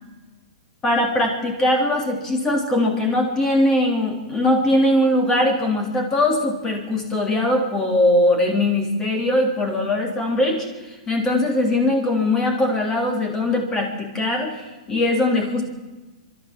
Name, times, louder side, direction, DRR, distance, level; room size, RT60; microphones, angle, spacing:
voice 1, 0.8-15.6, left 1 dB, 15° left, 2 dB, 3.3 m, -21 dB
28.5 x 12.5 x 7.5 m, 1.2 s
hypercardioid pair, 160°, 4 cm